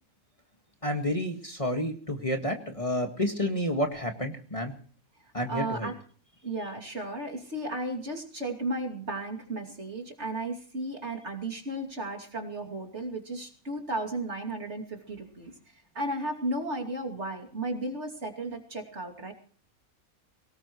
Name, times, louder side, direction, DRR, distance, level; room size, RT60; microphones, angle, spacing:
voice 1, 0.8-4.7 5.3-5.9, left 1 dB, 25° left, 3 dB, 1.9 m, -30 dB
voice 2, 5.5-6.0 6.4-15.5 15.9-19.3, right 1 dB, 50° right, 1 dB, 3.0 m, -34 dB
23.0 x 19.0 x 3.1 m, 0.43 s
omnidirectional pair, 1.5 m